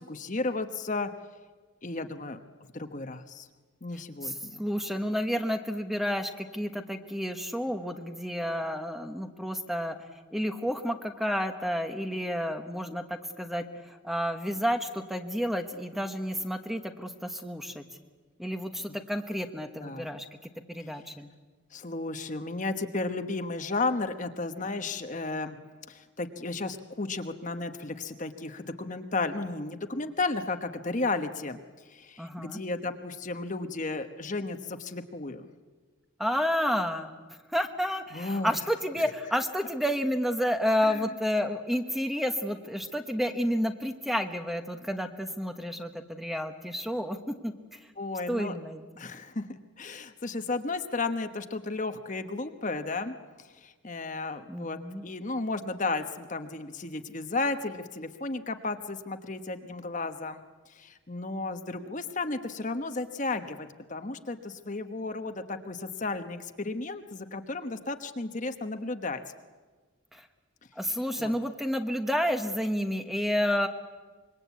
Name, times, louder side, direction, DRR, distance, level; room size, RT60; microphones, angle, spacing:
voice 1, 0.1-1.1 1.8-2.4 2.7-3.5 3.8-4.7 19.8-20.1 21.0-21.1 21.7-25.6 25.9-31.6 31.9-35.5 38.1-38.6 40.8-41.1 48.0-48.6 49.0-49.5 49.8-60.4 60.7-69.2 71.2-71.3, left 3 dB, 35° left, 7 dB, 1.2 m, -33 dB
voice 2, 4.2-10.0 10.3-17.8 18.4-21.3 32.2-32.6 36.2-37.1 37.5-47.2 47.4-47.8 48.3-48.8 54.5-55.1 70.1-70.3 70.8-73.7, equal, ahead, 6 dB, 1.2 m, -30 dB
26.0 x 23.0 x 8.4 m, 1.4 s
head